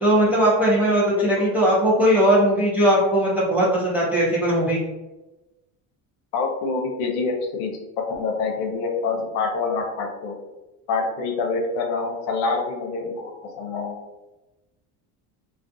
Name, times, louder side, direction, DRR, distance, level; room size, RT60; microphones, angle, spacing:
voice 1, 0.0-4.8, right 1 dB, 5° right, -7 dB, 0.4 m, -19 dB
voice 2, 6.3-10.3 10.9-14.0, left 4 dB, 85° left, 2 dB, 0.7 m, -26 dB
2.4 x 2.2 x 2.6 m, 1.0 s
cardioid pair, 160°, 38 cm